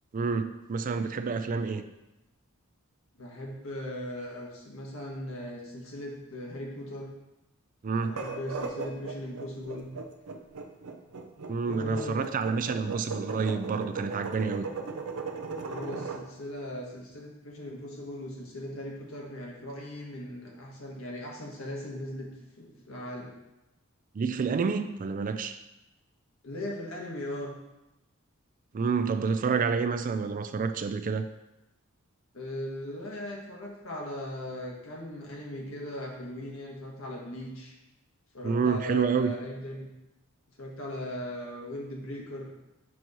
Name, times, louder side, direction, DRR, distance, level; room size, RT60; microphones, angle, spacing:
voice 1, 0.1-1.8 7.8-8.2 11.5-14.7 24.1-25.6 28.7-31.3 38.4-39.3, right 5 dB, 40° right, 10 dB, 0.4 m, -28 dB
voice 2, 3.2-7.1 8.1-9.9 11.6-12.3 15.7-22.3 22.6-23.3 26.4-27.5 32.3-37.7 38.3-39.9 40.6-42.5, left 1 dB, 70° left, -1 dB, 1.3 m, -38 dB
sound 1, 8.0-16.2, right 4 dB, 85° right, 0.6 m, -37 dB
6.1 x 3.1 x 5.3 m, 0.94 s
head